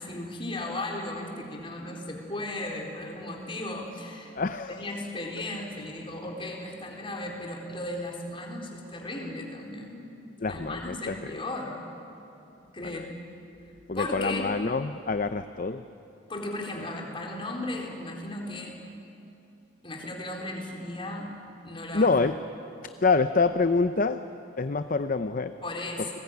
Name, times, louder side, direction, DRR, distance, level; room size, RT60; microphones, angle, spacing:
voice 1, 0.0-4.3 4.7-10.0 10.5-11.8 12.7-13.2 13.9-14.5 16.3-18.8 19.8-21.3 21.6-22.1 25.6-26.1, left 1 dB, 25° left, 0 dB, 4.1 m, -36 dB
voice 2, 4.4-4.8 10.4-11.4 12.8-13.1 13.9-15.8 21.9-22.3 23.0-24.2 24.6-25.5, left 4 dB, 45° left, 10 dB, 0.7 m, -26 dB
29.5 x 20.5 x 9.5 m, 2.8 s
head